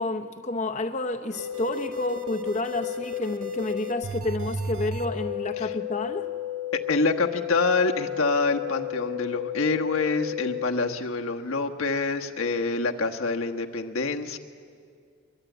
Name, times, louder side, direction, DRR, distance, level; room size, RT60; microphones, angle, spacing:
voice 1, 0.0-6.3, left 2 dB, 35° left, 4 dB, 0.7 m, -30 dB
sound 1, 1.3-10.7, left 6 dB, 85° right, 1.7 m, -33 dB
voice 2, 6.7-14.4, left 3 dB, 80° left, 3 dB, 1.3 m, -26 dB
23.0 x 22.5 x 9.1 m, 2.2 s
head